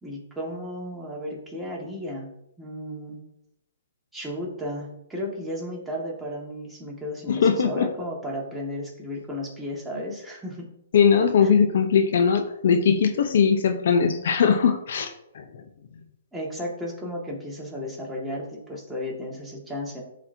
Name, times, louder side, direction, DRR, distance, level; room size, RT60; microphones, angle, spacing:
voice 1, 0.0-2.3 2.6-3.2 4.1-10.7 11.4-11.5 16.3-20.0, left 1 dB, 5° right, -4 dB, 1.8 m, -34 dB
voice 2, 7.3-7.9 10.9-15.1 15.3-15.4, left 6 dB, 65° left, 7 dB, 0.7 m, -20 dB
10.5 x 4.2 x 2.7 m, 0.82 s
hypercardioid pair, 130°, 0 cm